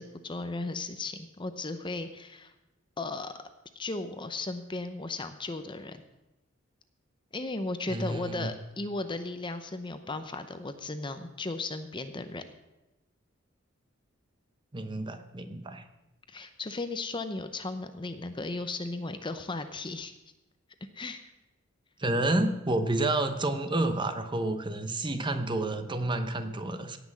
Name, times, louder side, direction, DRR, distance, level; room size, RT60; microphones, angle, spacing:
voice 1, 0.0-2.5 3.0-3.3 3.8-6.0 7.3-12.4 16.3-20.1 20.9-21.3, left 2 dB, 25° left, 9 dB, 0.7 m, -36 dB
voice 2, 7.9-8.5 14.7-15.9 22.0-27.0, right 2 dB, 25° right, 8 dB, 0.9 m, -29 dB
17.0 x 6.1 x 7.5 m, 0.97 s
head